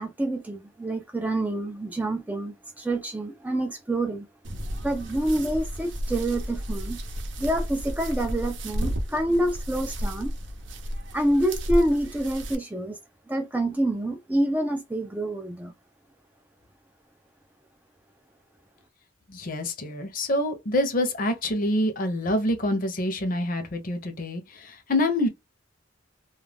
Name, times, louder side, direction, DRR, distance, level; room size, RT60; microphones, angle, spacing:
voice 1, 0.0-4.3 4.8-7.0 7.4-10.3 11.1-13.0 13.3-15.7, right 1 dB, 10° right, 0.3 m, -27 dB
sound 1, 4.4-12.5, equal, 65° right, 0.6 m, -32 dB
voice 2, 19.3-25.3, left 1 dB, 45° left, 0.7 m, -26 dB
2.3 x 2.2 x 3.3 m
head